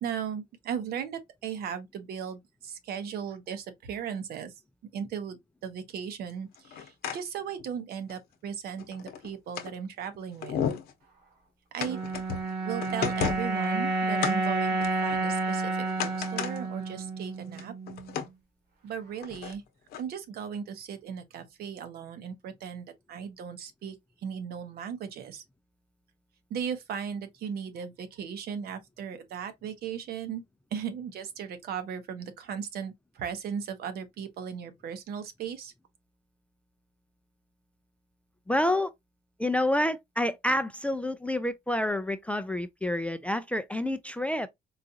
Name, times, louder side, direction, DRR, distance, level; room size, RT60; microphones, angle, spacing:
voice 1, 0.0-4.5 4.9-10.6 11.7-12.0 12.6-17.7 18.8-19.6 20.0-24.0 24.2-25.4 26.5-30.4 30.7-35.7, right 7 dB, 65° right, 0.8 m, -37 dB
sound 1, 6.6-7.2 7.6-7.7 8.1-8.2 8.8-9.7 10.1-10.2 10.4-10.9 11.8-12.5 12.8-13.7 14.2-14.4 14.8-15.5 15.9-16.6 16.9-17.0 17.4-18.3 19.2-19.5 19.9-20.0, left 8 dB, 70° left, 0.8 m, -33 dB
sound 2, 11.8-18.2, right 3 dB, 85° right, 1.4 m, -30 dB
voice 2, 38.5-38.9 39.4-44.5, left 1 dB, 10° left, 0.3 m, -28 dB
3.9 x 2.4 x 2.6 m
cardioid pair, 110°, 17 cm